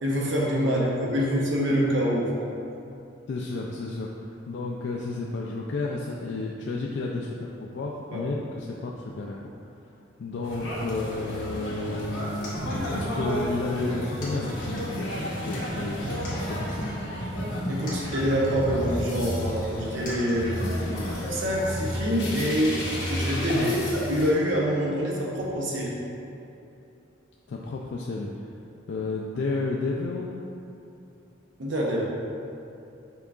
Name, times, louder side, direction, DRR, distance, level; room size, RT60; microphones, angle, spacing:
voice 1, 0.0-2.5 8.1-8.2 17.7-22.8 23.1-26.0 31.6-32.0, equal, 65° right, -3 dB, 0.7 m, -26 dB
voice 2, 3.3-9.4 10.2-17.0 23.5-23.7 27.5-28.3 28.9-30.4, left 3 dB, 60° left, -3 dB, 0.3 m, -32 dB
sound 1, 10.4-24.3, equal, 75° left, 1.0 m, -32 dB
sound 2, 11.4-11.8 12.4-13.6 14.2-15.0 15.4-15.9 16.2-18.8 19.2-19.3 20.1-21.2, left 1 dB, 40° left, 1.1 m, -44 dB
5.7 x 3.8 x 2.4 m, 2.7 s
head